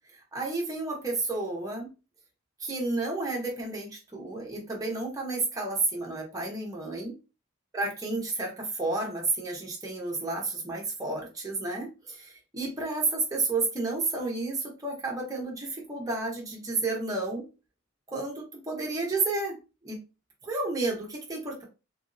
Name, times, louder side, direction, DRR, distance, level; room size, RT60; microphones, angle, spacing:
voice 1, 0.3-1.9 2.6-7.1 7.7-17.4 18.1-19.6 19.8-20.0 20.4-21.6, right 3 dB, 15° right, -2 dB, 0.7 m, -31 dB
2.9 x 2.6 x 2.5 m, 0.30 s
head